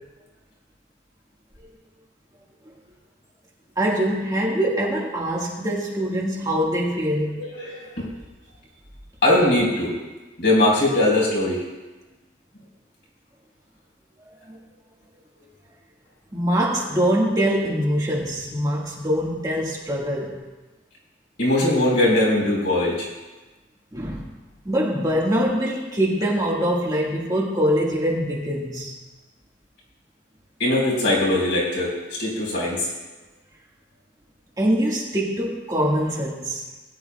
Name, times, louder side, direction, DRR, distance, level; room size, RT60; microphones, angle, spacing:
voice 1, 3.8-7.4 14.5-14.6 16.3-20.4 23.9-24.3 24.6-28.9 34.6-36.6, equal, 20° right, -4 dB, 1.6 m, -23 dB
voice 2, 7.4-8.1 9.2-9.9 10.4-11.6 21.4-23.1 30.6-31.9 32.2-32.9, left 1 dB, 60° left, -4 dB, 4.2 m, -20 dB
20.0 x 10.5 x 2.3 m, 1.2 s
head